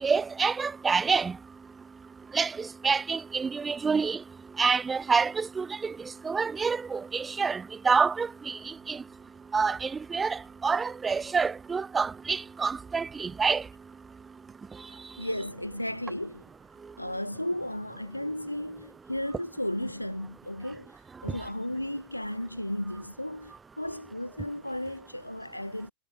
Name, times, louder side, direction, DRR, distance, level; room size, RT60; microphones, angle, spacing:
voice 1, 0.0-1.4 2.3-4.2 4.6-5.9 6.2-9.0 9.5-13.6, right 5 dB, 15° right, 0.3 m, -27 dB
voice 2, 15.2-16.4 17.0-25.9, left 1 dB, 90° left, 1.2 m, -34 dB
figure-of-eight pair, 90°, 0 cm